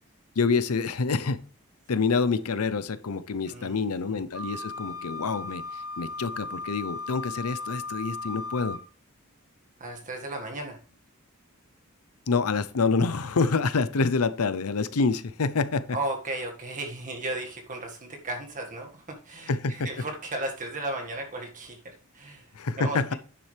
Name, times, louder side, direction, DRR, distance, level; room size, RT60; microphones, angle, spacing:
voice 1, 0.4-1.4 1.9-8.8 12.3-15.9 19.5-19.9 22.6-23.1, left 4 dB, 90° left, 14 dB, 0.7 m, -27 dB
voice 2, 3.5-4.2 9.8-10.8 15.9-23.2, right 2 dB, 35° right, 2 dB, 1.8 m, -35 dB
Wind instrument woodwind instrument, 4.3-8.8, left 3 dB, 20° right, 1.4 m, -36 dB
9.8 x 7.3 x 3.3 m, 0.37 s
head